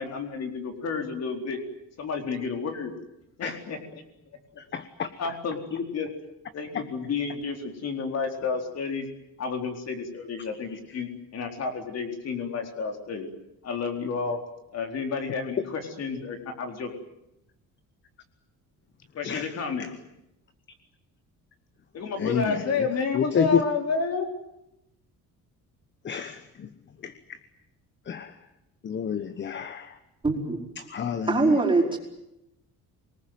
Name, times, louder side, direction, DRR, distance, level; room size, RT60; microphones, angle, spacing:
voice 1, 0.0-1.6 2.0-2.9 3.4-3.8 5.2-6.1 6.5-9.0 9.4-13.3 13.6-14.4 14.7-16.9 19.1-19.9 21.9-24.3, left 5 dB, 50° left, 4 dB, 4.3 m, -30 dB
voice 2, 4.7-5.1 19.3-19.5 22.2-22.6 23.1-23.6 26.0-26.4 27.0-27.1 28.1-28.3 28.8-29.9 30.9-31.5, left 7 dB, 35° left, 11 dB, 1.2 m, -27 dB
voice 3, 30.2-30.7 31.3-32.0, right 3 dB, 15° right, -1 dB, 4.9 m, -23 dB
27.0 x 20.0 x 9.4 m, 0.85 s
cardioid pair, 155°, 33 cm